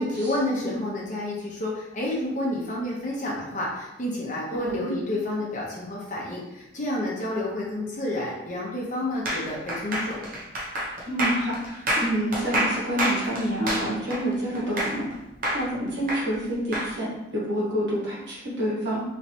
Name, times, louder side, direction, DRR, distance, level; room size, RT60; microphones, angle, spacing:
voice 1, 0.0-10.2, left 1 dB, 40° left, -4 dB, 0.8 m, -29 dB
voice 2, 4.6-5.0 11.0-15.1 15.5-19.0, equal, 75° right, -7 dB, 1.4 m, -28 dB
sound 1, 9.3-15.1 15.4-16.9, right 1 dB, 45° right, 0.7 m, -27 dB
3.1 x 3.0 x 2.7 m, 0.93 s
head